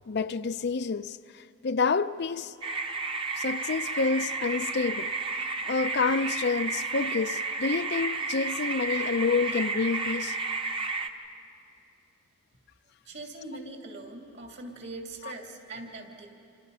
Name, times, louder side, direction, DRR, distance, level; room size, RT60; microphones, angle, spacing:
voice 1, 0.1-2.5 3.4-10.4 15.2-15.3, left 4 dB, 50° left, 0.5 m, -29 dB
sound 1, 2.6-11.1, right 3 dB, 25° right, 1.0 m, -32 dB
voice 2, 13.0-16.3, right 2 dB, 55° right, 3.0 m, -41 dB
29.5 x 27.5 x 5.6 m
head